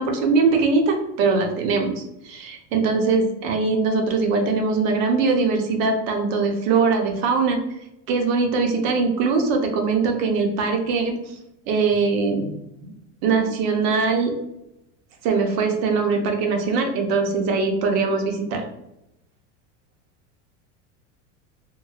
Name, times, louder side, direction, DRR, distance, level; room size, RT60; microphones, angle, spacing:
voice 1, 0.0-7.6 8.1-11.3 11.7-12.5 13.2-14.3 15.2-18.6, right 4 dB, 55° right, 3 dB, 0.7 m, -21 dB
3.0 x 2.6 x 2.3 m, 0.84 s
supercardioid pair, 140°, 38 cm